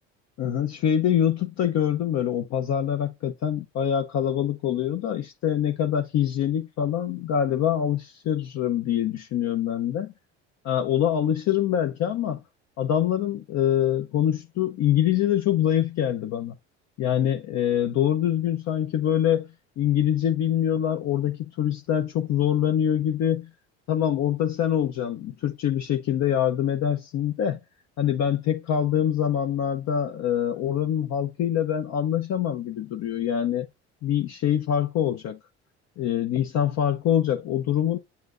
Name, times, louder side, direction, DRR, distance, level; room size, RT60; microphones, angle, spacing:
voice 1, 0.4-10.1 10.6-12.4 12.8-16.5 17.0-19.5 19.8-23.5 23.9-27.6 28.0-33.7 34.0-35.4 36.0-38.0, left 10 dB, 50° left, 0.8 m, -24 dB
8.2 x 5.9 x 2.6 m
hypercardioid pair, 70°, 35 cm